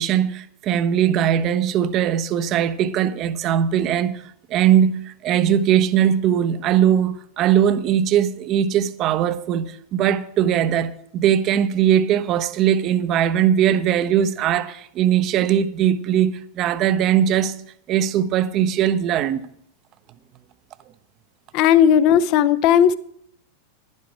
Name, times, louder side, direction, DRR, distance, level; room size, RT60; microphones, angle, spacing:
voice 1, 0.0-17.6 17.9-19.4, right 9 dB, 35° right, 0.7 m, -20 dB
voice 2, 21.5-22.9, left 9 dB, 40° left, 0.6 m, -15 dB
11.0 x 11.0 x 4.8 m
figure-of-eight pair, 90°, 0 cm